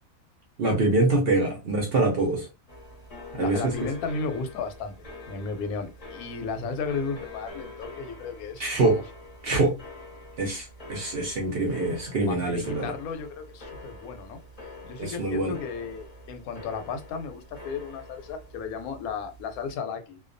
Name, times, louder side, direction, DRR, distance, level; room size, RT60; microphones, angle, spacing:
voice 1, 0.6-2.5 3.3-3.7 8.6-9.0 9.4-9.7 10.4-12.9 15.0-15.6, right 2 dB, 55° right, 0.7 m, -24 dB
sound 1, 2.7-19.7, left 2 dB, 35° left, 0.6 m, -45 dB
voice 2, 3.4-4.9 5.3-9.0 12.3-14.4 14.8-20.2, left 5 dB, 85° left, 1.0 m, -34 dB
2.3 x 2.2 x 2.5 m
omnidirectional pair, 1.5 m